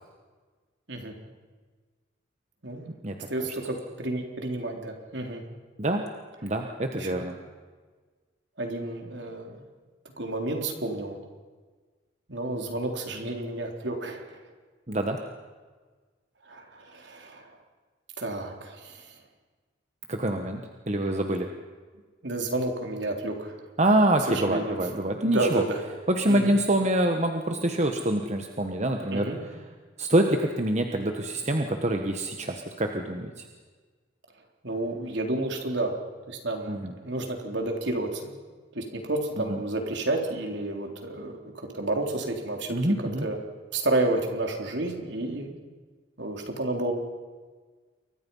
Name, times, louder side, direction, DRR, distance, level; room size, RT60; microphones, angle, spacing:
voice 1, 3.3-5.4 7.0-7.3 8.6-9.6 10.2-11.2 12.3-14.4 16.5-17.5 18.2-19.2 22.2-23.6 24.3-24.8 25.2-25.8 26.3-26.5 29.1-29.4 34.6-35.9 36.3-38.3 38.7-43.4 43.7-45.5 46.2-46.9, right 2 dB, 60° right, 3 dB, 3.8 m, -31 dB
voice 2, 6.4-7.3 14.9-15.2 20.1-20.6 20.9-21.5 23.8-25.6 26.1-29.3 30.0-33.5 36.7-36.9 39.5-39.6 42.7-43.3, right 1 dB, 35° right, 4 dB, 1.4 m, -25 dB
29.0 x 23.5 x 5.6 m, 1.4 s
head